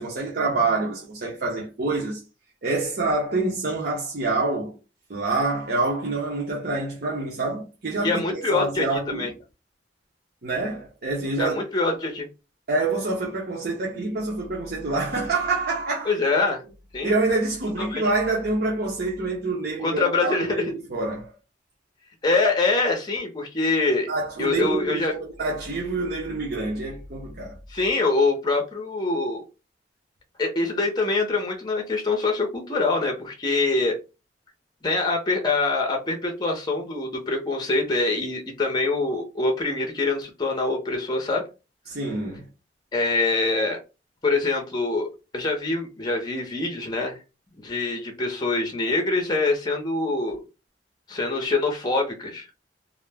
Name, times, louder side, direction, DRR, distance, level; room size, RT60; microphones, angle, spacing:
voice 1, 0.0-2.2 2.6-4.8 5.1-9.3 10.4-11.6 12.7-16.2 17.0-21.3 24.1-27.6 41.9-42.5, right 3 dB, 60° right, 0.7 m, -26 dB
voice 2, 8.0-9.3 11.4-12.3 16.1-16.6 16.9-17.1 17.8-18.0 19.8-20.7 22.2-24.1 24.4-25.2 27.7-29.4 30.4-34.0 34.8-41.4 42.9-43.8 44.2-45.1 45.3-47.2 47.6-50.4 51.1-52.7, left 3 dB, 25° left, 0.6 m, -24 dB
2.4 x 2.0 x 3.3 m
head